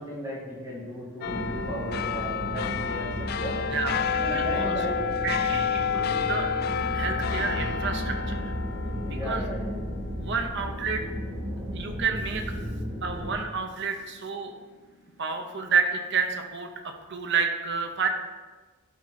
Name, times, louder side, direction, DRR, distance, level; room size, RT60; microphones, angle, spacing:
voice 1, 0.0-3.6 4.2-5.0 9.0-9.8, equal, 15° right, -5 dB, 1.8 m, -36 dB
sound 1, 1.2-12.0 12.4-12.5, left 6 dB, 45° left, 0.3 m, -30 dB
sound 2, 1.2-13.3, equal, 35° right, 1.8 m, -34 dB
voice 2, 3.7-4.7 5.2-6.5 6.9-8.5 9.1-9.4 10.2-11.0 11.7-12.4 13.0-14.5 15.2-16.7 17.1-18.1, right 5 dB, 55° right, 5 dB, 0.7 m, -29 dB
12.0 x 4.3 x 4.2 m, 1.3 s
head